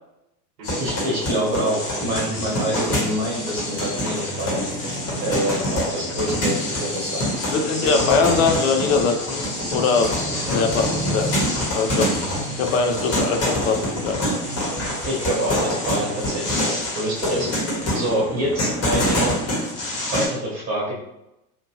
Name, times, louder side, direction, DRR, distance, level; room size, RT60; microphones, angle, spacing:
sound 1, 0.6-20.3, left 1 dB, 30° left, 1.2 m, -26 dB
sound 2, 0.6-17.5, right 2 dB, 75° right, 0.9 m, -37 dB
voice 1, 0.8-4.9 5.2-7.2 7.8-8.3 10.5-10.6 15.0-17.5 17.9-19.3 20.1-20.9, right 1 dB, 35° right, -3 dB, 1.1 m, -26 dB
voice 2, 7.4-10.2 10.4-11.3 11.7-12.3 12.5-14.2, left 5 dB, 55° left, 5 dB, 0.6 m, -22 dB
2.9 x 2.5 x 2.8 m, 0.87 s
hypercardioid pair, 90°, 48 cm